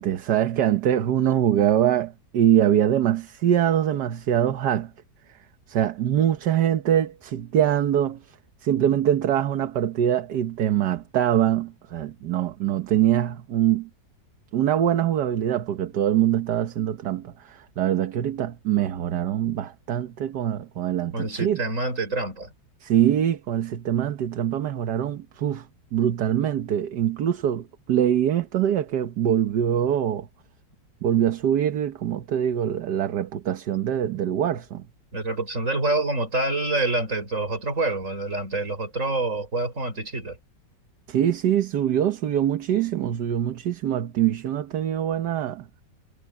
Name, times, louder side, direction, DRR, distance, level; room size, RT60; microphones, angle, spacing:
voice 1, 0.0-4.9 5.7-8.2 8.6-13.9 14.5-21.6 22.8-25.7 25.9-30.3 31.0-34.8 41.1-45.6, right 10 dB, 70° right, 1.6 m, -23 dB
voice 2, 21.1-22.5 35.1-40.4, right 2 dB, 45° right, 5.9 m, -27 dB
omnidirectional pair, 1.9 m